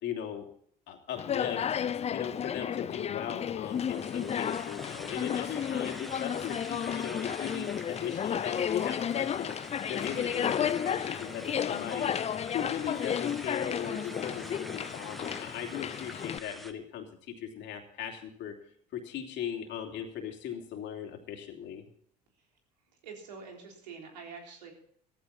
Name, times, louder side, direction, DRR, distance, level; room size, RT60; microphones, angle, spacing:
voice 1, 0.0-0.5 0.9-1.6 2.1-9.5 9.9-12.1 12.5-18.6 18.9-21.9, left 9 dB, 60° left, 3 dB, 3.0 m, -38 dB
Conversation, 1.2-16.4, left 8 dB, 30° left, 0.5 m, -33 dB
sound 1, 3.6-16.7, equal, ahead, 1.6 m, -46 dB
voice 2, 23.0-24.7, right 5 dB, 90° right, 1 dB, 3.8 m, -45 dB
15.0 x 14.5 x 4.2 m, 0.62 s
hypercardioid pair, 75°, 21 cm